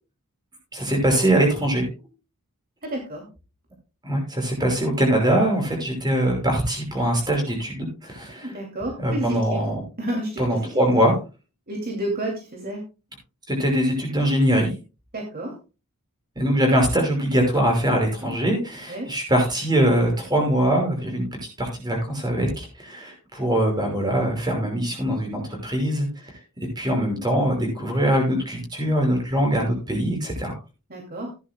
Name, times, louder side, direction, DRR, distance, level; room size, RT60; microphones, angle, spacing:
voice 1, 0.7-1.9 4.0-8.5 9.0-9.8 10.4-11.2 13.5-14.7 16.4-21.3 21.6-26.3 26.8-30.6, right 1 dB, 20° right, 2 dB, 5.8 m, -22 dB
voice 2, 2.8-3.3 8.4-9.6 10.0-10.8 11.7-12.8 15.1-15.5 18.9-19.1 30.9-31.3, right 1 dB, 45° right, 0 dB, 2.6 m, -30 dB
16.0 x 11.0 x 2.2 m, 0.31 s
head